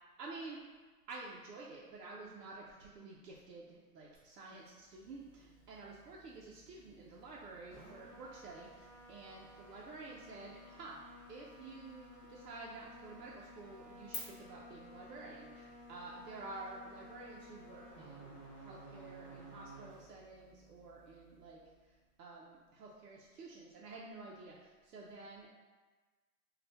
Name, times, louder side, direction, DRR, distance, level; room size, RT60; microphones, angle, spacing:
voice 1, 0.2-0.6 1.1-11.0 11.3-25.5, right 3 dB, 85° right, -4 dB, 0.7 m, -50 dB
sound 1, 4.1-14.2, left 6 dB, 30° left, 0.9 m, -60 dB
sound 2, 4.8-22.0, equal, 15° right, 0.6 m, -56 dB
2.6 x 2.3 x 3.3 m, 1.3 s
hypercardioid pair, 155°, 47 cm